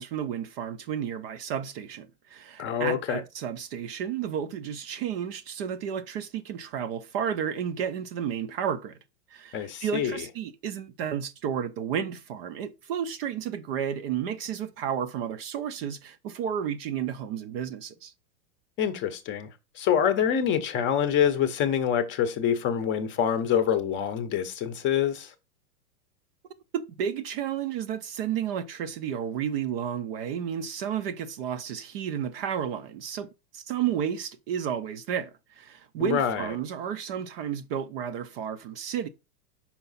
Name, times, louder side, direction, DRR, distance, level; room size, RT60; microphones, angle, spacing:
voice 1, 0.0-9.0 9.3-18.1 26.7-33.3 33.5-39.1, right 8 dB, 40° right, 0.5 m, -32 dB
voice 2, 2.6-3.2 9.5-10.2 18.8-19.5 19.8-25.3 36.0-36.5, left 8 dB, 25° left, 0.7 m, -26 dB
5.8 x 4.7 x 4.0 m
hypercardioid pair, 130°, 47 cm